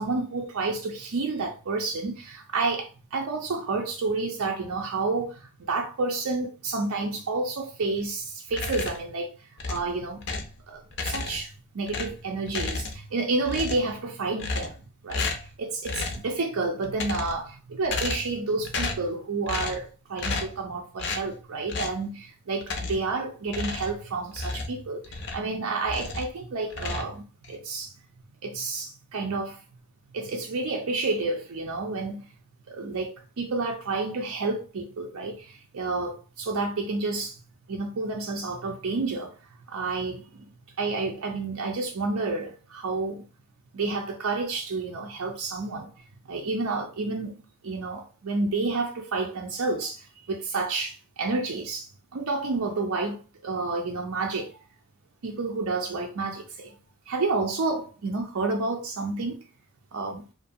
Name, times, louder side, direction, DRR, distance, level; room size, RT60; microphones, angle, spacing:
voice 1, 0.0-9.3 9.7-10.2 10.7-14.8 15.0-15.3 15.6-27.9 28.4-29.6 30.1-32.3 32.7-37.4 37.7-39.3 39.7-40.5 40.8-43.3 43.7-45.9 46.3-53.2 53.4-54.6 55.2-56.7 57.1-59.4 59.9-60.2, right 3 dB, 90° right, 0.5 m, -30 dB
sound 1, 8.5-9.1 9.6-10.6 10.9-11.5 11.9-13.1 13.4-14.0 14.4-14.8 15.1-15.5 15.8-16.3 16.8-17.5 17.8-18.4 18.6-19.1 19.5-19.9 20.2-20.6 21.0-21.3 21.7-22.0 22.6-23.1 23.5-25.5 25.8-26.3 26.7-27.5, left 3 dB, 55° left, 0.4 m, -32 dB
2.5 x 2.3 x 2.6 m
head